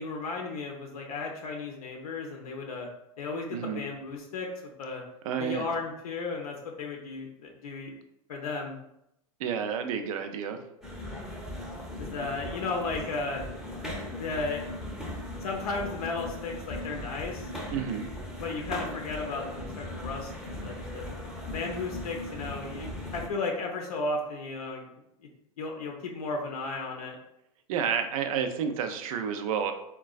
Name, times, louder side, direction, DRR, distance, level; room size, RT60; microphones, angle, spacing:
voice 1, 0.0-2.9 3.2-4.5 4.8-5.0 5.4-7.9 8.3-8.7 12.0-13.4 14.2-14.6 15.4-17.5 18.4-21.1 21.4-24.8 25.6-27.2, left 3 dB, 80° left, 0 dB, 0.5 m, -34 dB
voice 2, 3.5-3.8 5.2-5.7 9.4-10.6 17.7-18.1 27.7-29.7, right 7 dB, 65° right, 7 dB, 0.4 m, -30 dB
sound 1, 10.8-23.3, left 1 dB, ahead, 0.6 m, -38 dB
3.8 x 2.2 x 2.3 m, 0.81 s
hypercardioid pair, 100°, 19 cm